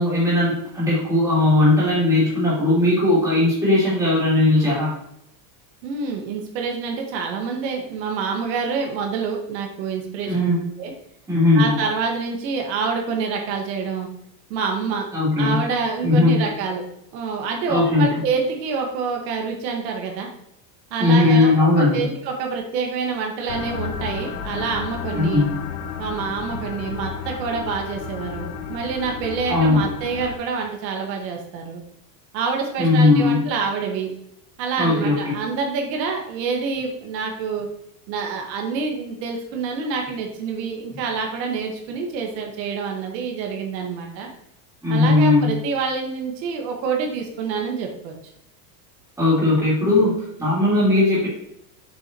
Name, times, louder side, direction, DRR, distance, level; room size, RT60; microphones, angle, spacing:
voice 1, 0.0-4.9 10.2-10.7 11.3-11.7 15.1-15.6 16.0-16.4 17.7-18.2 21.0-22.1 25.1-25.5 29.5-29.8 32.8-33.4 34.8-35.3 44.8-45.5 49.2-51.3, left 2 dB, 5° right, -9 dB, 3.0 m, -18 dB
voice 2, 5.8-10.5 10.8-10.9 11.5-14.1 14.5-15.1 15.4-16.8 17.1-20.3 20.9-25.4 26.0-31.8 32.3-34.1 34.6-37.7 38.1-44.3 44.9-48.1, right 5 dB, 85° right, 2 dB, 1.7 m, -27 dB
sound 1, 23.5-30.4, left 7 dB, 60° left, 0.8 m, -32 dB
7.7 x 6.1 x 3.0 m, 0.74 s
cardioid pair, 180°, 50 cm